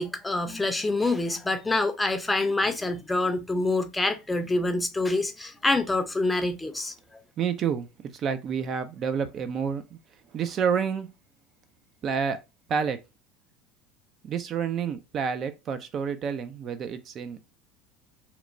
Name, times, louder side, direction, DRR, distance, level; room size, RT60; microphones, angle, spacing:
voice 1, 0.0-7.2, left 2 dB, 10° left, 0.5 m, -26 dB
voice 2, 7.4-7.9 8.1-10.0 10.3-11.1 12.0-12.4 12.7-13.0 14.2-17.4, right 7 dB, 45° right, 0.4 m, -29 dB
2.9 x 2.1 x 2.5 m
supercardioid pair, 95°, 0 cm